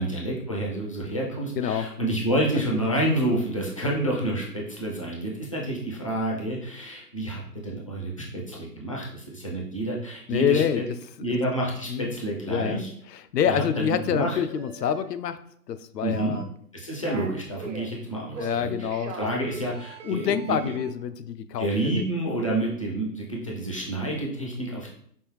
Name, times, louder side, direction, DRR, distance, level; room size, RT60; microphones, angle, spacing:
voice 1, 0.0-10.8 11.2-12.9 13.4-14.4 16.0-16.4 16.7-18.9 19.2-20.7 21.6-24.9, right 1 dB, 20° left, -3 dB, 0.4 m, -29 dB
voice 2, 1.6-1.9 10.3-10.8 11.9-12.1 12.5-15.4 15.7-16.5 18.4-19.2 20.0-21.7 21.9-22.0, left 8 dB, 75° left, 12 dB, 0.6 m, -26 dB
sound 1, 14.3-15.0 16.1-16.6 16.9-17.9 18.3-20.9, right 5 dB, 50° right, 0.6 m, -41 dB
5.4 x 2.6 x 3.1 m, 0.65 s
hypercardioid pair, 145°, 49 cm